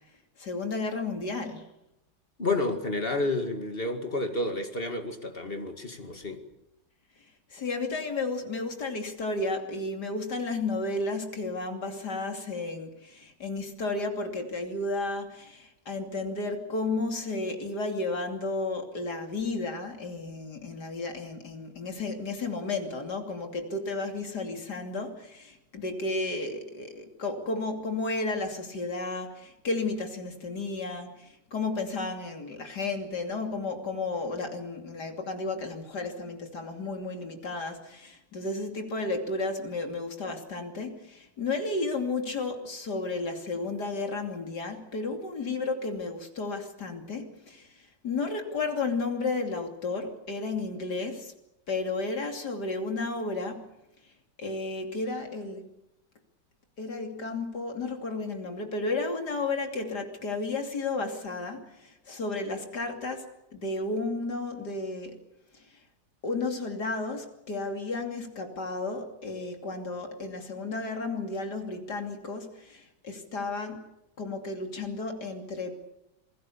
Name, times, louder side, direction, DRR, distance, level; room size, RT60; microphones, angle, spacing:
voice 1, 0.4-1.7 7.5-51.3 51.7-53.7 54.4-55.6 56.8-63.3 63.5-65.2 65.5-65.8 66.2-73.9 74.2-75.8, left 3 dB, 65° left, 4 dB, 3.4 m, -33 dB
voice 2, 2.4-6.4, left 2 dB, 30° left, 6 dB, 2.3 m, -30 dB
27.5 x 20.0 x 7.1 m, 0.87 s
omnidirectional pair, 1.9 m